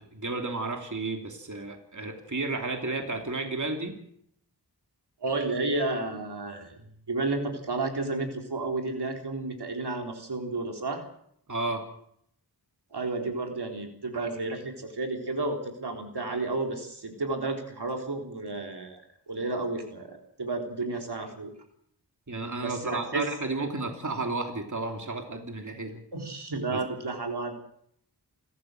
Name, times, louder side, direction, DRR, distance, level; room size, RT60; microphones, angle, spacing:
voice 1, 0.0-3.9 11.5-11.9 22.3-26.0 26.7-26.8, right 3 dB, 45° right, 3 dB, 3.1 m, -32 dB
voice 2, 5.2-6.8 7.1-11.0 12.9-21.5 22.6-23.3 26.1-27.5, right 3 dB, 75° right, 3 dB, 3.8 m, -32 dB
28.5 x 14.0 x 7.8 m, 0.71 s
wide cardioid pair, 60°, 40 cm